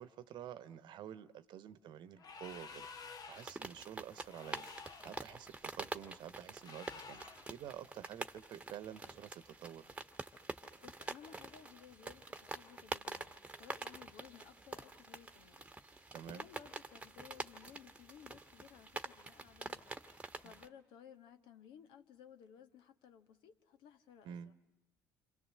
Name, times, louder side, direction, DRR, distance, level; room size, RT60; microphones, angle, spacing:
voice 1, 0.0-2.9 3.3-4.7 5.0-9.9 16.1-16.5 24.2-24.5, right 10 dB, 55° right, 1.1 m, -49 dB
sound 1, 2.2-3.6 4.2-5.3 6.6-7.5, left 5 dB, 45° left, 1.5 m, -51 dB
sound 2, 3.3-20.7, right 3 dB, 15° right, 1.4 m, -47 dB
voice 2, 10.8-15.7 15.9-19.8 20.1-24.5, left 8 dB, 65° left, 1.4 m, -58 dB
29.5 x 26.5 x 7.6 m
hypercardioid pair, 60°, 9 cm